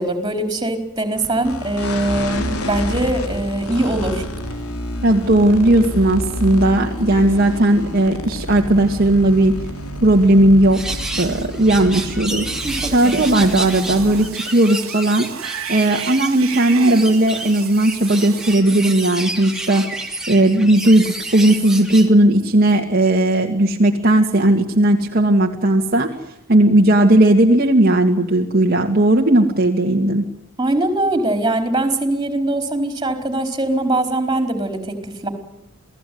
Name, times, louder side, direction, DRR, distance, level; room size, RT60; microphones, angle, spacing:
voice 1, 0.0-4.2 12.6-13.2 30.6-35.3, right 1 dB, 20° right, 7 dB, 4.5 m, -22 dB
sound 1, 1.1-14.3, equal, 75° left, 3.8 m, -29 dB
voice 2, 5.0-9.6 10.0-12.5 12.9-15.3 15.7-30.3, right 1 dB, 45° right, 1 dB, 2.1 m, -16 dB
sound 2, 10.7-22.1, right 2 dB, ahead, 2.8 m, -30 dB
Cat / Bathtub (filling or washing), 12.5-18.5, right 8 dB, 65° right, 2.0 m, -34 dB
28.5 x 18.0 x 9.5 m, 0.85 s
head